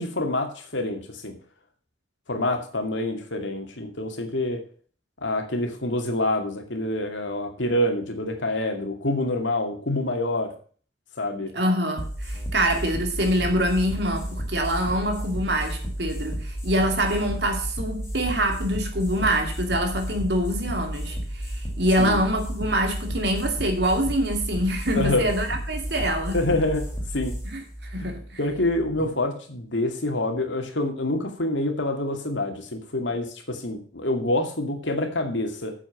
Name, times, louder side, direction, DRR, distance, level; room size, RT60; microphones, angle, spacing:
voice 1, 0.0-1.3 2.3-4.6 5.2-10.5 11.2-11.5 22.0-22.2 25.0-25.3 26.3-26.9 27.1-27.3 28.0-35.7, left 1 dB, 80° left, 2.4 m, -26 dB
voice 2, 11.5-26.4 27.5-28.4, right 1 dB, 60° right, 2.7 m, -25 dB
sound 1, 12.0-29.0, equal, 15° left, 3.4 m, -32 dB
8.7 x 7.5 x 7.0 m
head